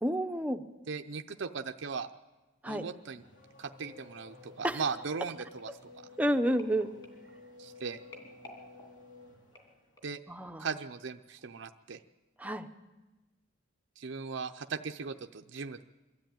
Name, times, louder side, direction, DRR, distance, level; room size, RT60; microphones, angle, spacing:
voice 1, 0.0-0.6 2.6-2.9 4.6-4.8 6.2-6.9 10.3-10.7 12.4-12.7, equal, 10° right, 7 dB, 0.7 m, -30 dB
voice 2, 0.9-2.1 2.7-3.2 3.6-5.7 6.0-6.1 7.6-8.0 10.0-10.2 10.6-12.0 14.0-15.8, right 5 dB, 65° right, 6 dB, 0.6 m, -38 dB
Race car auto racing / Accelerating revving vroom, 2.7-10.0, left 3 dB, 80° left, 2.9 m, -54 dB
sound 1, 5.3-10.3 10.9-11.1 11.4-11.5, left 2 dB, 25° left, 3.0 m, -56 dB
23.5 x 13.0 x 9.0 m, 1.1 s
head